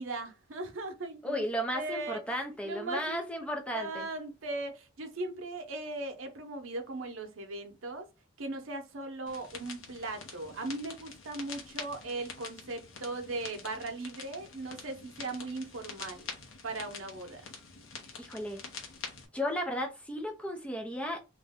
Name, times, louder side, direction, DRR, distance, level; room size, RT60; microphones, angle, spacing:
voice 1, 0.0-1.5 1.7-2.2 2.6-3.5 3.7-8.1 8.4-16.3 16.6-17.4, right 2 dB, 80° right, 0.7 m, -38 dB
voice 2, 1.2-4.1 18.2-18.6 19.3-21.2, equal, 5° left, 0.5 m, -34 dB
sound 1, 9.3-19.3, left 5 dB, 80° left, 0.8 m, -46 dB
2.6 x 2.2 x 3.5 m
head